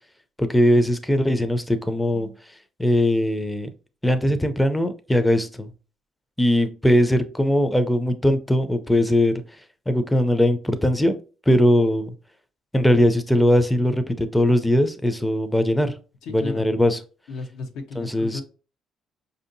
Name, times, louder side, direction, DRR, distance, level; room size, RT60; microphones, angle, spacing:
voice 1, 0.4-2.3 2.8-3.7 4.0-5.7 6.4-9.4 9.9-11.2 11.5-12.1 12.7-15.9 16.3-17.0 18.0-18.4, left 1 dB, 5° left, 0.4 m, -20 dB
voice 2, 16.2-16.7 17.3-18.4, left 3 dB, 80° left, 0.7 m, -34 dB
5.0 x 2.7 x 2.6 m
cardioid pair, 105°, 0 cm